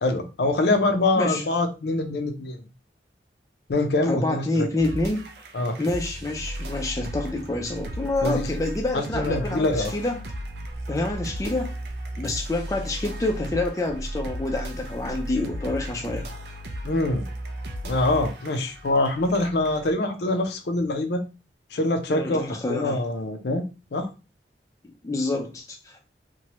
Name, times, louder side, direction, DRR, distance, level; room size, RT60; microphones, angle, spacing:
voice 1, 0.0-2.6 3.7-4.7 5.5-5.8 8.2-8.5 8.9-9.9 16.8-17.3 17.8-21.2 21.7-23.7 23.9-24.1, left 2 dB, 75° left, 6 dB, 0.5 m, -24 dB
voice 2, 4.1-5.2 5.8-10.2 10.9-11.7 12.2-16.3 22.1-23.0 25.0-26.0, left 2 dB, 20° left, 2 dB, 0.4 m, -27 dB
sound 1, 4.8-19.9, right 1 dB, 70° right, 0.4 m, -35 dB
3.0 x 2.2 x 2.8 m, 0.31 s
head